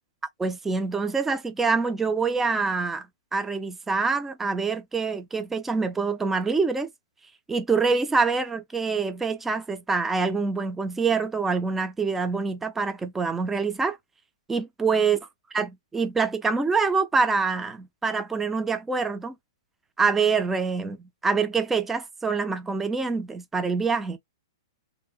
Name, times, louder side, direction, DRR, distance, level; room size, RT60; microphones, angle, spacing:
voice 1, 0.4-3.1 3.3-6.9 7.5-14.0 14.5-15.2 15.5-19.3 20.0-21.0 21.2-24.2, right 4 dB, 10° right, 0.4 m, -25 dB
3.1 x 2.6 x 2.8 m
figure-of-eight pair, 110°, 3 cm